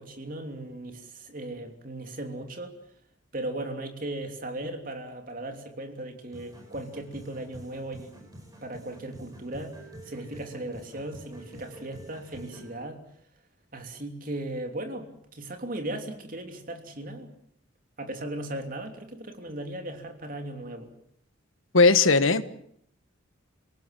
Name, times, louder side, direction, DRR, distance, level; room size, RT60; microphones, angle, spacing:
voice 1, 0.0-2.8 3.3-8.3 8.6-9.7 10.0-13.0 13.7-17.3 18.0-20.9, right 1 dB, 45° right, 3.2 m, -37 dB
sound 1, 6.3-12.7, right 1 dB, 20° right, 4.8 m, -47 dB
voice 2, 21.7-22.4, left 3 dB, 90° left, 1.4 m, -18 dB
27.5 x 18.0 x 7.7 m
head